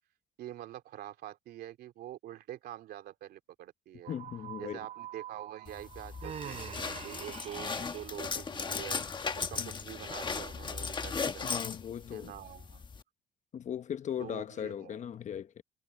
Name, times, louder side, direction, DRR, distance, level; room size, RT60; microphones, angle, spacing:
voice 1, 0.4-4.1 4.6-11.5 12.1-12.8 14.2-15.0, right 13 dB, 70° right, 2.9 m, -46 dB
sound 1, 4.0-7.7, right 13 dB, 50° right, 1.0 m, -49 dB
voice 2, 4.1-4.8 9.6-9.7 11.4-12.3 13.5-15.6, left 9 dB, 45° left, 1.0 m, -38 dB
sound 2, 5.7-13.0, left 5 dB, 25° left, 1.4 m, -37 dB
Human voice, 6.2-8.1, right 8 dB, 35° right, 0.6 m, -44 dB
cardioid pair, 110°, 17 cm